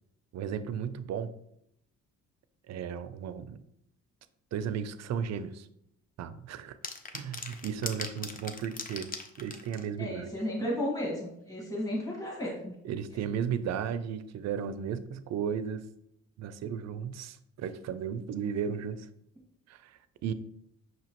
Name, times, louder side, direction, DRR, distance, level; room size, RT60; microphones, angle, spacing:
voice 1, 0.3-1.3 2.7-3.6 4.5-5.7 6.2-6.8 7.1-9.1 9.4-10.3 12.8-15.9 16.4-19.1 19.7-20.3, right 7 dB, 60° right, 12 dB, 0.4 m, -35 dB
sound 1, 6.8-9.9, left 4 dB, 30° left, 0.5 m, -39 dB
voice 2, 10.0-12.7, left 1 dB, 10° left, -3 dB, 1.3 m, -33 dB
5.7 x 2.9 x 2.9 m, 0.76 s
cardioid pair, 90°, 30 cm